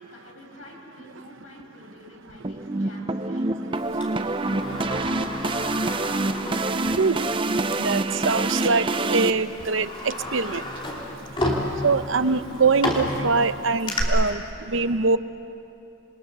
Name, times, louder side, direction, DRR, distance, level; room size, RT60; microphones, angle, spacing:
voice 1, 0.0-3.5 4.1-5.3, left 1 dB, 85° left, 7.0 m, -46 dB
sound 1, 2.4-9.3, right 2 dB, 25° right, 0.5 m, -26 dB
voice 2, 2.4-2.9 3.1-4.3 5.5-15.2, right 4 dB, 65° right, 0.8 m, -26 dB
Sliding door, 4.0-7.2 7.6-7.7 8.6-8.8 9.3-14.0, left 1 dB, 25° left, 3.0 m, -31 dB
27.5 x 22.5 x 6.9 m
head